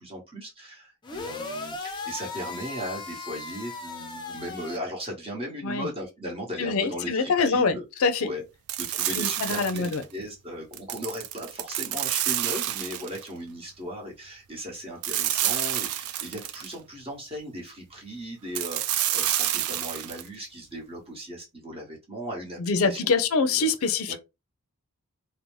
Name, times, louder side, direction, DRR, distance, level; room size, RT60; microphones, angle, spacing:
voice 1, 0.0-7.8 8.2-8.4 8.8-23.1 23.5-23.7 24.1-24.2, equal, 25° right, 1.0 m, -37 dB
sound 1, 1.0-4.8, left 3 dB, 20° left, 0.5 m, -37 dB
voice 2, 6.6-8.3 9.2-10.0 22.6-24.1, left 4 dB, 70° left, 0.5 m, -25 dB
sound 2, 8.7-10.0 10.7-13.3 15.0-16.7 18.5-20.3, right 12 dB, 90° right, 0.3 m, -28 dB
2.6 x 2.0 x 3.1 m
head